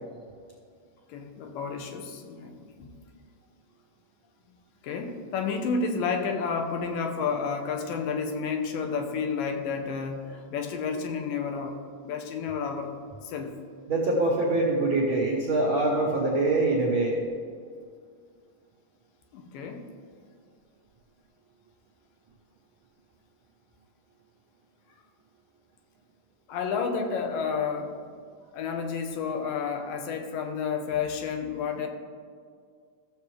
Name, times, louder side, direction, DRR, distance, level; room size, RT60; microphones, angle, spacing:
voice 1, 1.1-2.9 4.8-11.8 12.0-12.9 13.2-13.5 19.3-19.9 26.5-27.9 28.5-31.9, left 5 dB, 90° left, 4 dB, 2.5 m, -31 dB
voice 2, 13.9-17.2, right 2 dB, 80° right, -2 dB, 1.1 m, -24 dB
14.5 x 7.0 x 3.2 m, 2.1 s
omnidirectional pair, 3.9 m